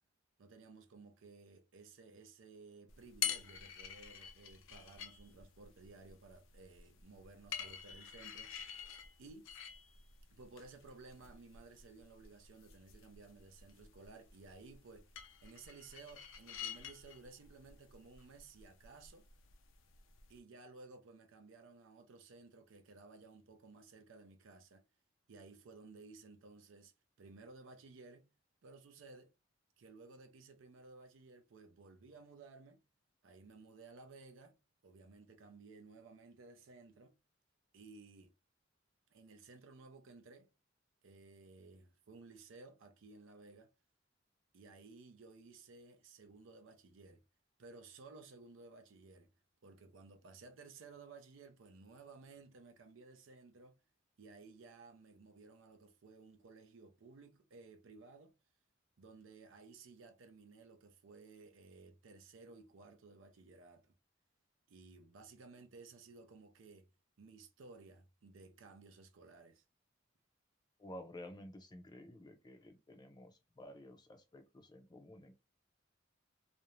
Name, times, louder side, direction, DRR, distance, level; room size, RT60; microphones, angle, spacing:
voice 1, 0.4-8.8 9.2-9.5 10.3-15.1 15.4-19.2 20.3-24.8 25.3-26.9 27.2-28.3 28.6-29.3 29.8-32.8 33.2-34.6 34.8-37.2 37.7-38.3 39.1-40.5 41.0-43.7 44.5-47.2 47.6-49.3 49.6-53.8 54.2-58.3 59.0-63.9 64.7-66.9 67.2-69.6, right 3 dB, 85° right, 0.5 m, -57 dB
sound 1, 2.9-20.4, left 9 dB, 85° left, 0.5 m, -48 dB
voice 2, 70.8-75.3, left 1 dB, 20° left, 0.5 m, -52 dB
2.5 x 2.0 x 3.0 m
head